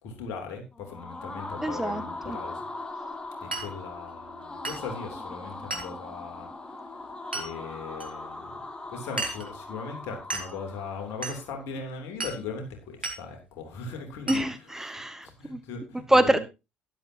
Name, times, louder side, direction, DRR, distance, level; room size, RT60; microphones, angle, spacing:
voice 1, 0.0-2.7 3.4-8.6 8.9-14.5 15.2-16.4, left 4 dB, 60° left, 3.2 m, -39 dB
sound 1, 0.7-11.6, left 2 dB, 15° left, 1.9 m, -40 dB
voice 2, 1.6-2.4 14.3-15.6 16.1-16.4, right 1 dB, 10° right, 0.9 m, -25 dB
Glass, 3.5-3.7 4.6-4.9 5.7-6.0 7.3-7.5 8.0-8.1 9.2-9.5 10.3-10.5 11.2-11.4 12.2-12.4 13.0-13.2 14.3-14.5, right 2 dB, 90° right, 1.3 m, -33 dB
12.5 x 11.0 x 2.9 m
figure-of-eight pair, 50°, 5 cm